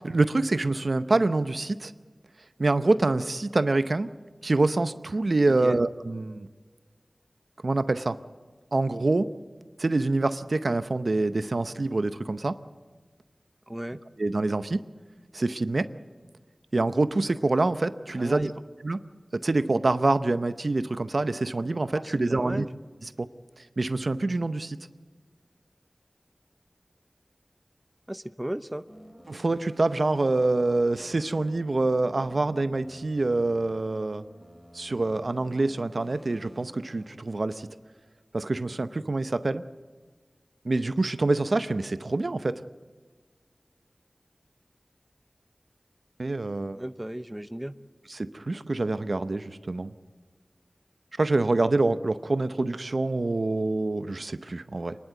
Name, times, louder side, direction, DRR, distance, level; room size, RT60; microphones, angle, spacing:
voice 1, 0.0-1.9 2.6-4.1 4.4-6.5 7.6-8.2 8.7-9.3 9.8-12.5 14.2-14.8 15.3-15.9 16.7-18.5 18.8-19.0 19.4-22.7 23.2-23.3 23.8-24.8 29.3-34.2 34.7-37.7 38.3-39.6 40.6-42.5 46.2-46.8 48.1-49.9 51.2-55.0, right 2 dB, 65° right, 12 dB, 0.7 m, -26 dB
voice 2, 5.5-5.8 13.7-14.0 18.2-18.5 21.9-22.7 28.1-28.8 46.7-47.7, right 1 dB, 15° right, 12 dB, 0.6 m, -35 dB
sound 1, 28.9-37.1, equal, 5° left, 3.4 m, -50 dB
26.5 x 11.0 x 9.2 m, 1.4 s
wide cardioid pair, 65°, 0 cm